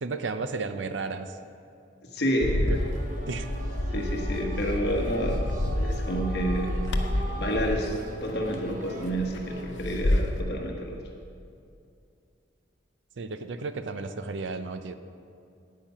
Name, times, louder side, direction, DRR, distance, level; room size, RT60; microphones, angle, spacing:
voice 1, 0.0-1.4 2.7-2.8 3.3-3.5 13.2-14.9, right 3 dB, 85° right, 10 dB, 0.6 m, -33 dB
voice 2, 2.0-2.7 3.9-5.5 5.8-6.8 7.4-11.0, equal, 60° left, 0 dB, 1.1 m, -29 dB
Bird, 2.4-10.4, left 1 dB, 85° left, 0.8 m, -29 dB
sound 1, 2.7-9.6, right 2 dB, 45° right, 1.0 m, -42 dB
9.4 x 8.8 x 5.5 m, 2.5 s
head